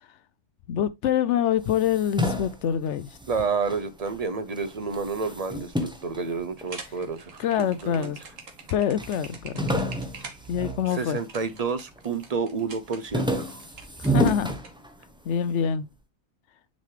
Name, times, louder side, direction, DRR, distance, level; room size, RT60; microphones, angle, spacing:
voice 1, 0.7-3.1 7.4-8.2 8.7-9.5 10.5-11.2 14.0-14.5 15.3-15.9, left 9 dB, 65° left, 0.8 m, -25 dB
sound 1, 1.6-4.2 4.5-7.1 7.7-8.3 8.6-8.7 9.0-11.6 12.0-12.4 12.7-15.3, right 1 dB, 5° right, 0.9 m, -30 dB
voice 2, 3.3-8.3 10.9-13.6, right 5 dB, 35° right, 0.7 m, -30 dB
sound 2, 6.6-14.7, right 4 dB, 65° right, 1.8 m, -44 dB
6.6 x 5.3 x 3.2 m
omnidirectional pair, 1.5 m